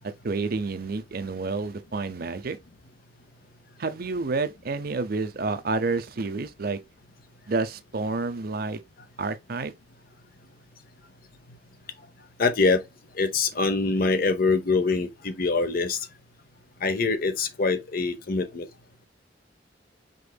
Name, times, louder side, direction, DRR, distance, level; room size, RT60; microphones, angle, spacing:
voice 1, 0.0-2.6 3.8-6.8 7.5-8.8 9.2-9.7, right 3 dB, 55° right, 0.6 m, -29 dB
voice 2, 12.4-12.8 13.2-16.0 16.8-18.6, left 3 dB, 50° left, 0.7 m, -24 dB
5.2 x 3.7 x 2.3 m
head